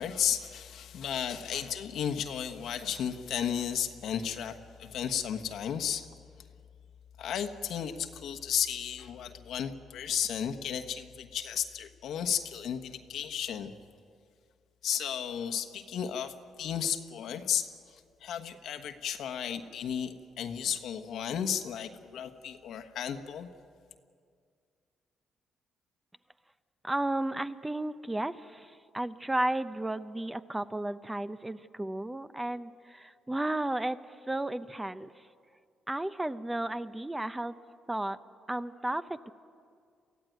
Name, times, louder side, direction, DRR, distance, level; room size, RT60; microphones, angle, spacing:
voice 1, 0.0-6.0 7.2-13.7 14.8-17.7 18.2-23.5, left 8 dB, 75° left, 7 dB, 1.3 m, -34 dB
voice 2, 26.8-34.0 34.3-35.1 35.9-37.5 37.9-38.2 38.5-39.3, right 1 dB, 10° right, 12 dB, 0.7 m, -33 dB
23.5 x 15.5 x 9.2 m, 2.2 s
cardioid pair, 90°, 0 cm